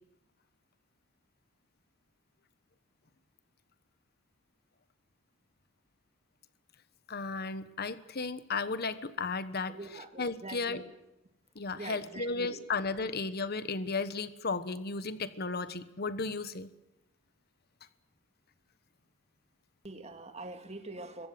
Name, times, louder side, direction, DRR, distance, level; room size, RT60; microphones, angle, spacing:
voice 1, 7.1-10.8 11.5-16.7, left 4 dB, 50° left, 13 dB, 1.2 m, -34 dB
voice 2, 9.7-10.9 11.8-12.6 19.8-21.3, right 2 dB, 30° right, 6 dB, 2.3 m, -44 dB
25.5 x 23.0 x 7.7 m, 0.90 s
head